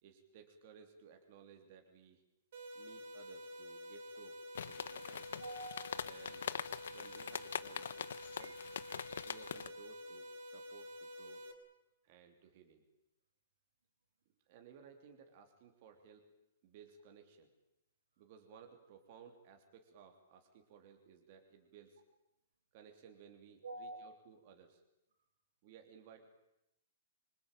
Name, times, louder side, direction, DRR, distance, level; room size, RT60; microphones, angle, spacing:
voice 1, 0.0-2.2 2.7-5.4 6.0-6.5 6.9-8.1 8.4-8.6 9.2-11.4 12.0-12.8 14.5-16.3 16.6-17.5 18.2-22.0 22.7-24.8 25.6-26.2, right 7 dB, 35° right, 4 dB, 3.1 m, -59 dB
sound 1, 2.5-11.5, left 1 dB, 50° right, 4.6 m, -50 dB
sound 2, 4.5-9.7, left 8 dB, 75° left, 1.1 m, -43 dB
voice 2, 5.4-6.1 8.4-8.5 8.9-9.4 23.6-24.1, right 1 dB, 85° right, 4 dB, 6.1 m, -48 dB
26.5 x 24.5 x 9.1 m, 0.87 s
hypercardioid pair, 180°, 0 cm